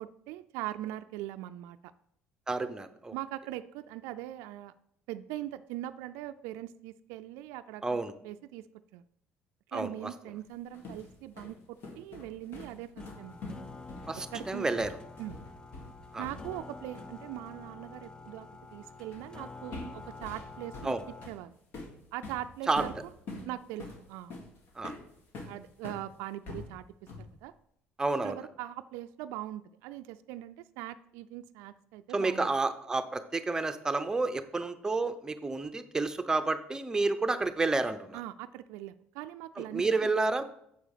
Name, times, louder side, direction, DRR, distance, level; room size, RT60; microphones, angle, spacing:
voice 1, 0.0-1.9 3.1-4.7 5.1-7.8 8.2-8.7 8.9-9.0 9.7-13.5 14.3-14.7 15.2-15.4 16.2-21.0 21.3-21.5 22.1-22.9 23.4-24.3 25.5-26.8 27.4-27.5 28.2-32.5 38.1-40.1, right 14 dB, 85° right, 11 dB, 0.3 m, -41 dB
voice 2, 2.5-3.1 7.8-8.1 9.7-9.9 14.1-14.9 16.1-16.2 20.8-21.0 22.7-22.8 24.8-24.9 28.0-28.4 32.1-38.2 39.6-40.4, right 3 dB, 15° right, 9 dB, 0.7 m, -30 dB
sound 1, 10.5-16.7 17.0-17.2 19.1-19.4 19.7-26.1 26.5-27.4, left 2 dB, 55° left, 1.9 m, -45 dB
sound 2, 13.0-21.3, left 3 dB, 20° left, 0.4 m, -48 dB
7.0 x 5.0 x 6.5 m, 0.73 s
cardioid pair, 110°, 4 cm